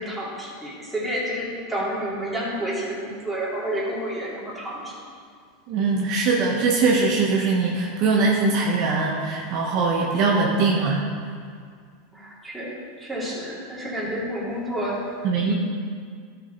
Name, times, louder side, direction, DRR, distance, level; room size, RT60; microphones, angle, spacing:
voice 1, 0.0-5.0 12.1-15.2 15.5-15.6, equal, 5° right, -7 dB, 2.8 m, -30 dB
voice 2, 5.7-11.0 15.2-15.5, right 4 dB, 50° right, -2 dB, 1.3 m, -21 dB
12.0 x 6.4 x 4.0 m, 2.1 s
supercardioid pair, 130°, 0 cm